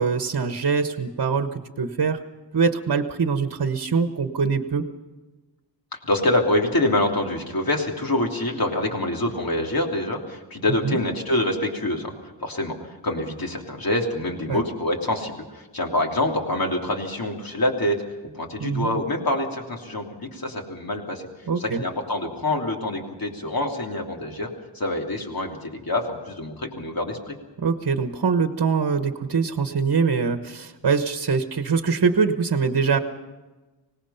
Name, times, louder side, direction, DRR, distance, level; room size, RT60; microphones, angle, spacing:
voice 1, 0.0-2.2 2.5-4.8 10.8-11.0 14.5-14.6 18.6-19.0 21.5-21.8 27.6-33.0, right 5 dB, 50° right, 7 dB, 1.2 m, -23 dB
voice 2, 5.9-12.1 12.4-12.7 13.0-18.0 18.3-21.2 21.6-27.3, left 1 dB, 50° left, 1 dB, 3.2 m, -26 dB
25.0 x 18.5 x 5.8 m, 1.2 s
wide cardioid pair, 120°, 45 cm